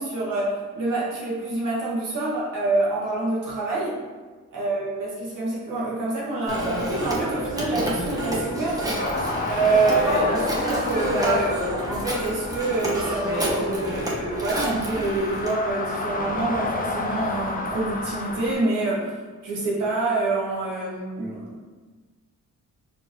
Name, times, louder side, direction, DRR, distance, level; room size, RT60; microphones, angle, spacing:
voice 1, 0.0-4.0 4.5-9.0 9.5-21.7, right 2 dB, 80° right, -6 dB, 1.3 m, -26 dB
Telephone, 6.5-15.5, equal, 10° right, 0.9 m, -28 dB
sound 1, 9.0-18.5, left 2 dB, 25° left, 0.5 m, -32 dB
4.4 x 2.9 x 3.0 m, 1.3 s
cardioid pair, 105°, 32 cm